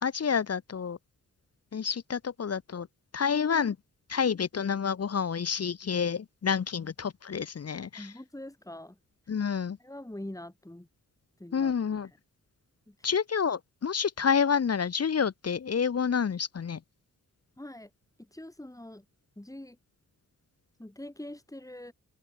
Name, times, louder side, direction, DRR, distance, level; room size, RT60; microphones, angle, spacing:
voice 1, 0.0-1.0 1.7-2.9 3.1-3.8 4.1-8.1 9.3-9.8 11.5-12.1 13.0-16.8, left 6 dB, 45° left, 1.0 m, -29 dB
voice 2, 7.9-9.0 9.3-9.4 9.8-10.9 11.4-11.7 12.0-12.2 12.9-13.1 17.6-17.9 18.2-19.1 19.4-19.8 20.8-21.9, left 1 dB, 10° left, 5.4 m, -44 dB
open air
cardioid pair, 70°, 34 cm